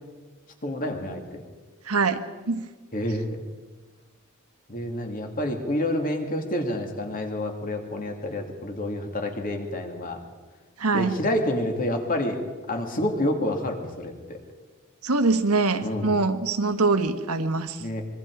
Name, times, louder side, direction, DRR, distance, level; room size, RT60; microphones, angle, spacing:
voice 1, 0.6-1.4 2.9-3.3 4.7-10.2 10.9-12.4 12.7-14.4 15.8-16.2 17.8-18.0, left 1 dB, 40° left, 3 dB, 2.6 m, -28 dB
voice 2, 1.9-2.2 2.5-2.6 10.8-11.1 15.0-17.8, right 3 dB, 85° right, 8 dB, 1.5 m, -23 dB
25.0 x 23.5 x 4.8 m, 1.3 s
head